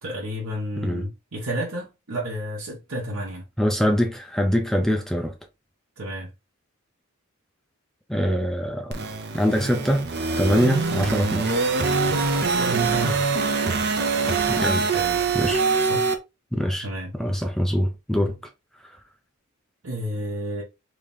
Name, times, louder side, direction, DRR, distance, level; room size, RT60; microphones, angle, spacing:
voice 1, 0.0-3.4 6.0-6.3 12.5-13.3 14.6-15.2 15.8-16.1 16.8-17.1 19.8-20.6, right 1 dB, 80° right, 1.2 m, -31 dB
voice 2, 3.6-5.3 8.1-9.0 9.3-10.1 10.4-11.5 14.5-14.8 15.3-15.6 16.5-16.9 17.2-18.3, equal, ahead, 0.5 m, -23 dB
sound 1, 8.9-16.1, right 4 dB, 50° right, 0.6 m, -24 dB
3.2 x 2.9 x 3.6 m
head